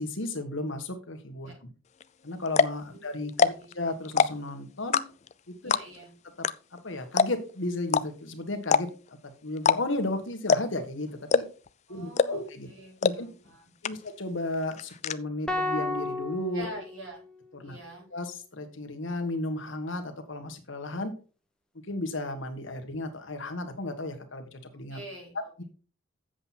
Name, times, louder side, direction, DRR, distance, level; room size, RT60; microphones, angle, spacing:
voice 1, 0.0-1.5 2.2-5.0 5.5-5.7 6.4-6.5 6.8-8.9 9.2-11.4 11.9-12.7 13.0-13.3 13.8-16.7 17.5-17.8 18.1-21.1 21.9-25.0 25.6-25.7, left 2 dB, 70° left, 6 dB, 1.6 m, -34 dB
sound 1, 2.0-2.1 2.5-2.8 3.3-3.7 4.0-4.5 4.9-5.3 5.7-6.0 6.4-6.5 6.8-6.9 7.2-7.5 7.9-8.0 8.6-9.1 9.6-10.0 10.5-10.8 11.3-11.7 12.2-12.5 13.0-13.1 13.5-13.6 13.8-14.3 14.5-15.1, left 5 dB, 35° left, 0.4 m, -22 dB
voice 2, 2.9-3.7 5.6-6.1 11.9-14.0 16.5-17.2 17.6-18.1 24.9-25.3, right 2 dB, 75° right, -2 dB, 5.4 m, -45 dB
sound 2, 15.5-17.8, left 2 dB, 5° left, 1.0 m, -33 dB
7.9 x 7.7 x 4.3 m, 0.37 s
head